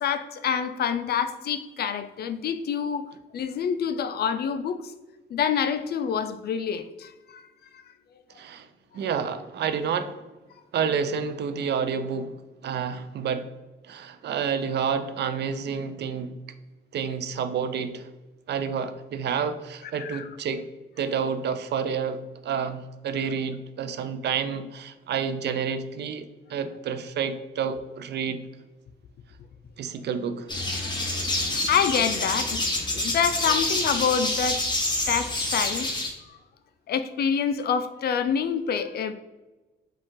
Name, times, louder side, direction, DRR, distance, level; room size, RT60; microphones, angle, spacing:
voice 1, 0.0-4.8 5.3-7.4 7.7-7.8 20.0-20.3 30.8-31.1 31.5-32.6 32.9-34.7 35.1-35.9 36.3-36.4 36.9-39.1, left 7 dB, 55° left, 11 dB, 0.4 m, -27 dB
voice 2, 8.4-8.7 8.9-10.2 10.7-13.5 13.8-16.3 16.9-18.1 18.5-20.6 21.0-28.4 29.8-30.5, right 6 dB, 60° right, 11 dB, 0.4 m, -29 dB
sound 1, 30.5-36.1, left 2 dB, 20° left, 1.1 m, -27 dB
5.1 x 2.4 x 3.7 m, 1.2 s
cardioid pair, 90°, 20 cm